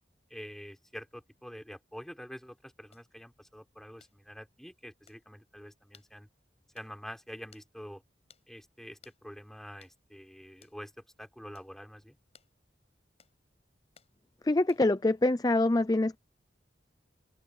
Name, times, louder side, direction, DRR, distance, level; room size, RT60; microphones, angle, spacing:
voice 1, 0.3-6.3 6.7-8.0 8.5-12.2, equal, ahead, 4.4 m, -47 dB
sound 1, 2.9-3.1 4.0-4.2 5.1-5.2 5.9-6.1 6.7-6.9 7.5-7.7 8.3-8.5 9.0-9.2 9.8-10.0 10.6-10.8 11.5-11.7 12.3-12.5 13.2-13.4 13.9-14.1 14.7-15.0, left 7 dB, 35° left, 6.5 m, -61 dB
voice 2, 14.4-16.2, left 2 dB, 20° left, 0.5 m, -25 dB
open air
head